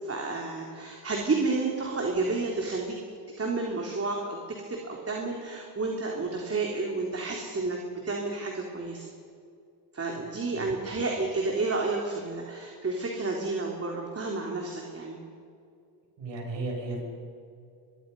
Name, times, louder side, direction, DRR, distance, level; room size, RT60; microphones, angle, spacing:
voice 1, 0.0-3.0 3.4-4.4 4.7-7.8 8.0-9.1 9.9-15.2, right 3 dB, 30° right, 0 dB, 3.5 m, -30 dB
voice 2, 16.2-17.0, right 2 dB, 70° right, 1 dB, 7.0 m, -34 dB
23.5 x 23.5 x 5.5 m, 2.4 s
cardioid pair, 100°, 45 cm